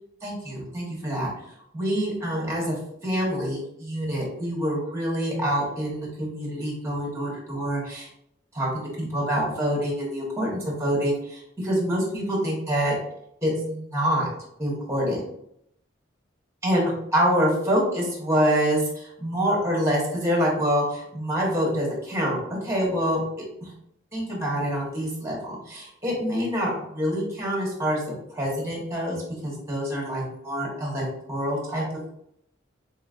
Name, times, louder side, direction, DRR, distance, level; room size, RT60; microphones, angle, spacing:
voice 1, 0.2-1.3 1.7-2.8 3.0-8.1 8.5-12.9 13.4-14.3 14.6-15.2 16.6-22.4 22.6-23.2 23.6-23.7 24.1-28.0 28.3-31.8, equal, 15° right, -3 dB, 1.2 m, -26 dB
3.5 x 3.0 x 2.5 m, 0.74 s
head